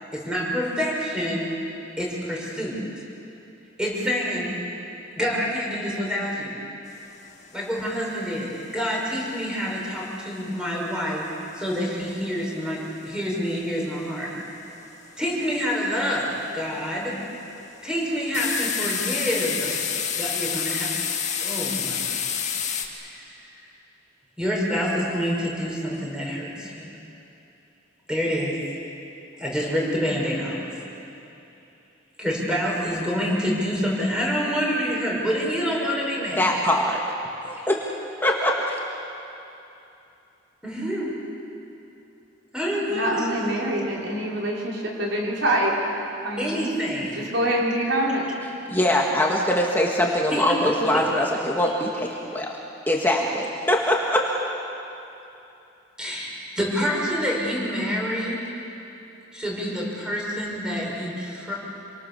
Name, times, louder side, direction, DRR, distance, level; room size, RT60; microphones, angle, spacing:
voice 1, 0.1-1.5 2.0-2.8 3.8-4.5 5.1-6.5 7.5-11.2 11.5-14.3 15.2-17.1 17.8-19.7 20.1-20.9 21.4-22.2 23.0-23.2 24.4-26.9 28.1-28.6 29.4-30.6 32.2-36.5 37.6-37.7 40.6-41.1 42.5-43.3 46.4-47.2 50.3-50.7 56.0-58.4 59.3-61.5, equal, 5° right, -4 dB, 6.0 m, -27 dB
sound 1, 7.0-7.2 7.5-7.6 7.8-8.2 8.5-9.3 9.7-10.8 11.2-12.6 13.0-13.2 13.5-13.6 13.9-14.3 14.7-15.1 15.6-16.0 16.5-17.1 17.4-17.7 18.3-22.9, left 7 dB, 40° left, 2.0 m, -28 dB
voice 2, 36.4-37.1 37.4-37.9 38.2-38.8 48.7-52.5 52.9-54.3, left 1 dB, 10° left, -1 dB, 1.7 m, -23 dB
voice 3, 42.9-45.9 46.2-46.7 47.1-48.3, right 1 dB, 75° right, -3 dB, 5.0 m, -25 dB
28.0 x 24.0 x 7.0 m, 2.8 s
head